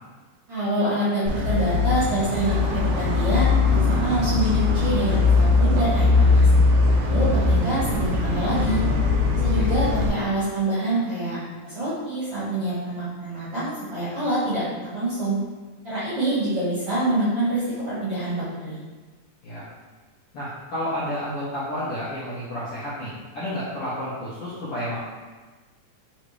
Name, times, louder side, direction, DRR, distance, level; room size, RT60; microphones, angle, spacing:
voice 1, 0.5-6.5 7.0-8.8 9.3-11.4 11.6-15.4 15.8-18.8, right 1 dB, 50° right, -11 dB, 1.7 m, -26 dB
sound 1, 1.3-10.1, left 3 dB, 70° right, 1.9 m, -20 dB
voice 2, 20.3-25.0, equal, 65° left, -10 dB, 1.5 m, -31 dB
5.1 x 3.2 x 3.2 m, 1.3 s
omnidirectional pair, 3.6 m